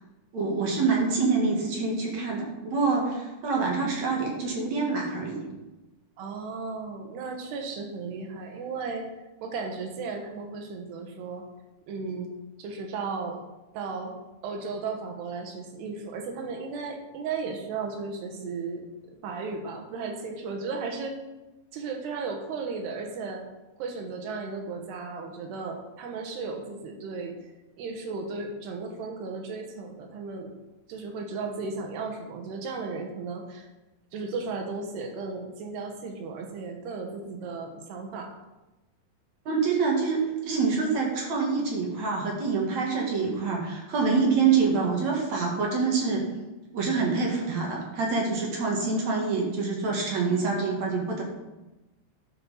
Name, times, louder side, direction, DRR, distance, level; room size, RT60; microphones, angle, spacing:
voice 1, 0.3-5.4 39.5-46.2 46.7-51.2, right 4 dB, 50° right, -1 dB, 2.6 m, -26 dB
voice 2, 6.2-9.1 9.4-11.5 11.9-12.3 12.6-13.4 13.7-14.1 14.4-18.9 19.2-21.2 21.7-23.4 23.8-27.3 27.8-30.5 30.9-33.7 34.1-38.3, right 4 dB, 75° right, 3 dB, 3.3 m, -35 dB
12.0 x 6.0 x 5.6 m, 1.0 s
omnidirectional pair, 4.9 m